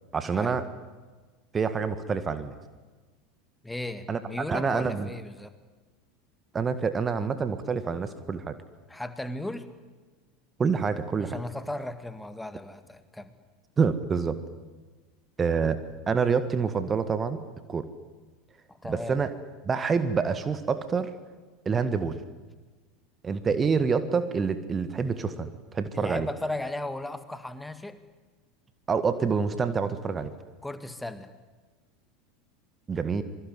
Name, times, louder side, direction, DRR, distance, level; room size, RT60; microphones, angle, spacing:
voice 1, 0.1-0.6 1.5-2.5 4.1-4.2 4.5-5.1 6.5-8.6 10.6-11.4 13.8-14.4 15.4-17.4 17.7-17.9 18.9-19.3 19.6-21.1 21.7-22.2 23.2-25.5 25.7-26.3 28.9-30.3 32.9-33.2, right 5 dB, 25° right, 12 dB, 1.8 m, -27 dB
voice 2, 3.6-5.5 8.9-9.7 11.2-13.3 18.7-19.2 25.9-28.0 30.6-31.3, left 1 dB, 5° left, 11 dB, 2.1 m, -36 dB
25.5 x 24.0 x 9.6 m, 1.3 s
figure-of-eight pair, 80°, 0 cm